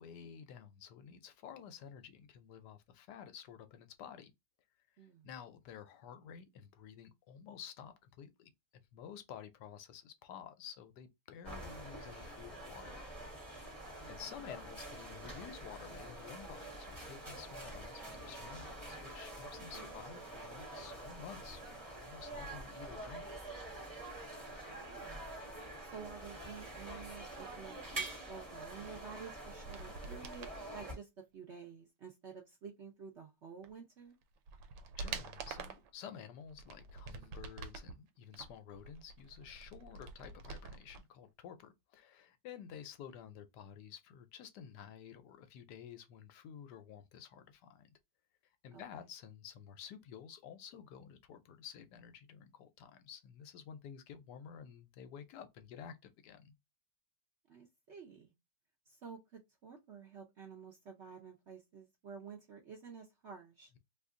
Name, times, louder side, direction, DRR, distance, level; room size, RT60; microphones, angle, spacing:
voice 1, 0.0-4.3 5.0-13.2 13.8-23.4 35.0-47.9 48.6-56.0 56.2-56.5, left 8 dB, 75° left, 1.1 m, -51 dB
voice 2, 5.0-5.3 14.0-14.5 19.6-20.0 24.6-25.3 25.8-34.2 48.7-49.0 57.5-58.3 58.9-63.7, right 6 dB, 60° right, 0.7 m, -51 dB
sound 1, 11.4-30.9, right 2 dB, 20° right, 1.4 m, -46 dB
sound 2, 29.5-30.6 33.6-33.7 34.2-35.9 36.5-37.9 38.3-41.0 41.3-41.4, right 5 dB, 80° right, 1.2 m, -46 dB
2.9 x 2.5 x 3.6 m
omnidirectional pair, 1.9 m